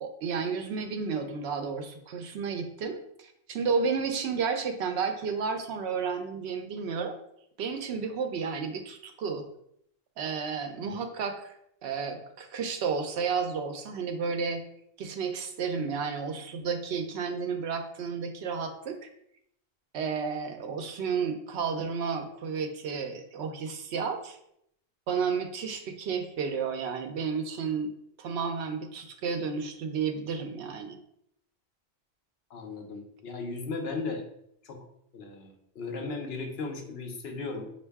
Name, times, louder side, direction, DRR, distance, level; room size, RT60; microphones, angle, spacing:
voice 1, 0.0-7.1 7.6-9.5 10.2-11.5 11.8-14.6 15.0-19.1 19.9-24.4 25.1-27.9 28.2-31.0, right 5 dB, 85° right, 6 dB, 0.9 m, -32 dB
voice 2, 32.5-34.2 34.6-34.8 35.1-37.7, left 3 dB, 75° left, 5 dB, 0.9 m, -36 dB
5.3 x 2.6 x 3.4 m, 0.73 s
omnidirectional pair, 1.1 m